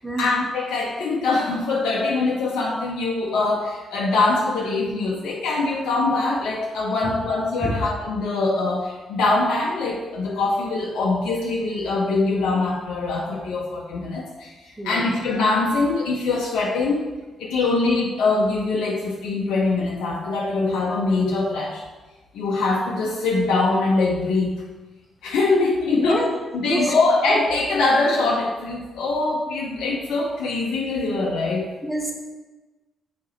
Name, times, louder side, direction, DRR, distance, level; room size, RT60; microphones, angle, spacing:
voice 1, 0.2-17.1 17.4-21.8 22.3-24.6 25.2-26.2 26.5-31.6, left 3 dB, 70° left, -3 dB, 0.9 m, -23 dB
voice 2, 14.8-15.1 26.0-26.3 26.6-26.9 31.8-32.1, right 1 dB, 15° right, 1 dB, 1.7 m, -27 dB
8.3 x 4.7 x 4.3 m, 1.2 s
hypercardioid pair, 45°, 0 cm